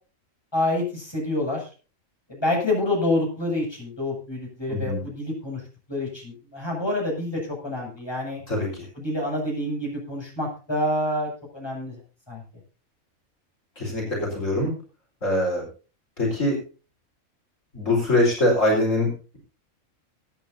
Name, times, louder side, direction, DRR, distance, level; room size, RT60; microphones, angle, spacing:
voice 1, 0.5-1.7 2.3-5.6 5.9-8.4 9.0-11.9 12.3-12.4, left 1 dB, 20° left, -2 dB, 7.5 m, -27 dB
voice 2, 4.7-5.0 8.5-8.9 13.8-14.7 15.2-15.6 16.2-16.6 17.7-19.4, left 1 dB, 65° left, -1 dB, 5.1 m, -23 dB
24.5 x 9.2 x 2.8 m, 0.35 s
omnidirectional pair, 1.4 m